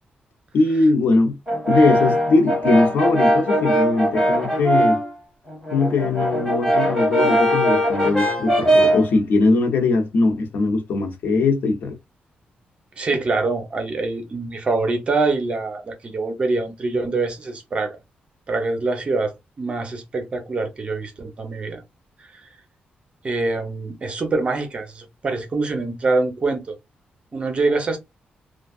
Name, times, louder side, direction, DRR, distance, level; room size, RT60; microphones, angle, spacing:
voice 1, 0.5-1.4 1.7-5.0 5.7-12.0, left 3 dB, 75° left, 0.8 m, -20 dB
Brass instrument, 1.5-5.1 5.5-9.1, equal, 5° left, 1.5 m, -20 dB
voice 2, 13.0-18.0 18.5-21.8 22.2-22.5 23.2-26.7 27.3-28.0, right 3 dB, 35° right, 0.8 m, -24 dB
3.3 x 2.3 x 2.3 m
wide cardioid pair, 140°, 3 cm